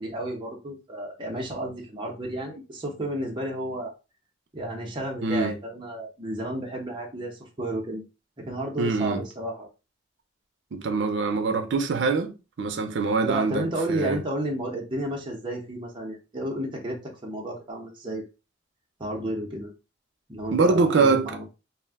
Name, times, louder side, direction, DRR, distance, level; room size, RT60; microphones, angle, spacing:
voice 1, 0.0-3.9 4.5-8.0 8.4-9.7 13.2-18.2 19.0-19.7 20.3-21.4, right 1 dB, 25° right, 0.6 m, -32 dB
voice 2, 5.2-5.5 8.8-9.2 10.7-12.3 12.6-13.6 13.9-14.2 20.5-21.3, right 4 dB, 75° right, 0.5 m, -23 dB
2.4 x 2.1 x 3.4 m
head